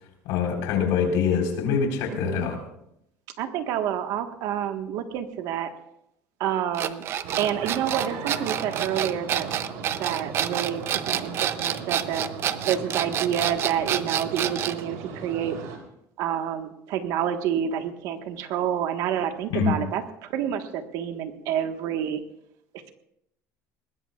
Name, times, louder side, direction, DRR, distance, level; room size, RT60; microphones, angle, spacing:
voice 1, 0.3-2.6 19.5-19.7, left 6 dB, 75° left, 2 dB, 4.4 m, -24 dB
voice 2, 3.4-5.7 6.4-7.0 7.4-9.5 10.0-12.3 12.7-15.6 16.2-22.2, right 9 dB, 65° right, 6 dB, 1.5 m, -28 dB
sound 1, 6.7-14.8, right 10 dB, 40° right, 0.6 m, -28 dB
sound 2, 7.2-15.8, right 5 dB, 85° right, 3.4 m, -37 dB
21.0 x 20.0 x 2.4 m, 0.78 s
cardioid pair, 150°, 6 cm